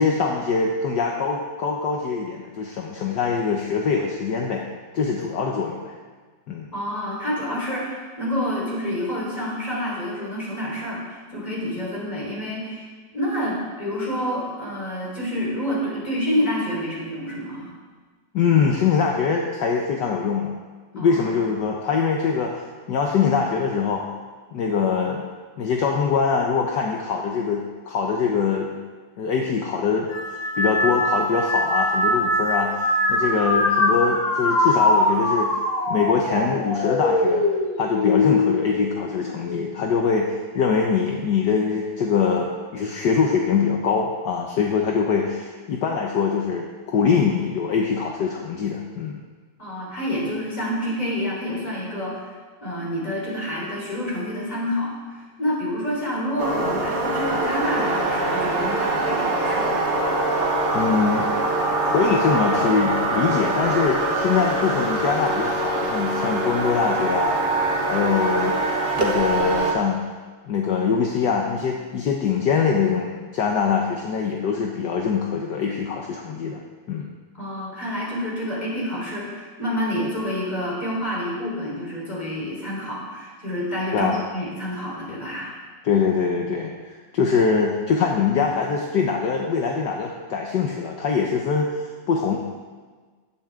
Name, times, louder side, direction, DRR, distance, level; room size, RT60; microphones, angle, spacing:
voice 1, 0.0-4.6 4.9-5.9 6.5-6.7 18.3-20.5 20.9-22.5 22.9-24.0 24.5-25.2 25.6-28.7 29.2-35.5 35.9-37.4 37.8-49.2 60.7-61.3 61.9-67.3 67.9-68.6 69.0-70.0 70.5-76.6 76.9-77.1 83.9-84.2 85.8-86.7 87.1-92.4, left 5 dB, 65° left, 1 dB, 1.6 m, -23 dB
voice 2, 6.7-17.7 21.0-21.4 49.6-52.3 52.6-60.0 77.4-85.5, equal, 20° left, -5 dB, 4.4 m, -28 dB
sound 1, 30.1-39.7 40.2-40.7 41.7-42.1, left 2 dB, 85° left, 2.6 m, -23 dB
sound 2, 56.4-69.7, right 2 dB, 30° right, 1.6 m, -23 dB
16.5 x 12.0 x 3.7 m, 1.4 s
omnidirectional pair, 2.0 m